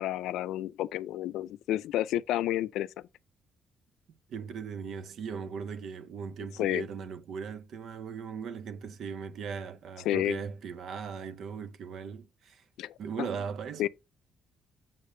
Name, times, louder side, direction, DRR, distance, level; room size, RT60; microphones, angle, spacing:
voice 1, 0.0-2.9 6.6-6.9 10.1-10.4 12.8-13.3 13.8-13.9, left 13 dB, 90° left, 0.3 m, -30 dB
voice 2, 4.3-12.6 13.0-13.9, right 6 dB, 70° right, 0.6 m, -38 dB
7.3 x 6.5 x 2.7 m
cardioid pair, 90°, 0 cm